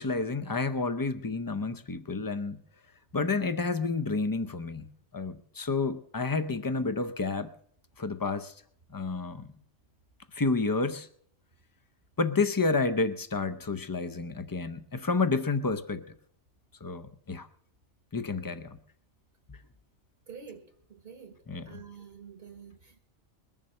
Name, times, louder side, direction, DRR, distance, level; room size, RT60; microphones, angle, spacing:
voice 1, 0.0-2.6 3.1-4.9 5.1-7.5 8.0-8.5 8.9-9.5 10.3-11.1 12.2-16.0 16.8-17.5 18.1-18.8 19.5-19.6 21.5-21.8, left 3 dB, 25° left, 0.5 m, -30 dB
voice 2, 20.3-20.6 20.9-21.4 21.7-23.0, right 6 dB, 55° right, 1.4 m, -47 dB
21.0 x 7.2 x 6.5 m
omnidirectional pair, 1.2 m